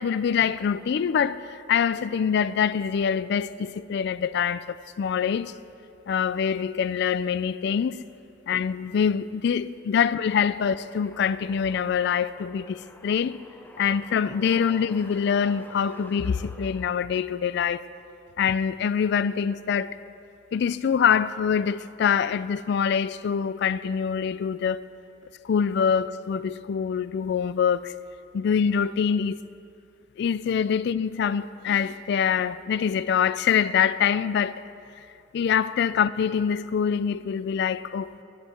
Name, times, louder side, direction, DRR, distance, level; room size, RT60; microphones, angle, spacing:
voice 1, 0.0-5.5 6.1-8.0 8.5-13.4 13.8-17.8 18.4-20.0 20.5-24.8 25.4-27.9 28.3-29.4 30.2-34.6 35.3-38.2, left 7 dB, 60° left, 0.3 m, -25 dB
sound 1, 10.7-17.4, equal, 10° left, 0.6 m, -49 dB
9.9 x 7.3 x 9.0 m
head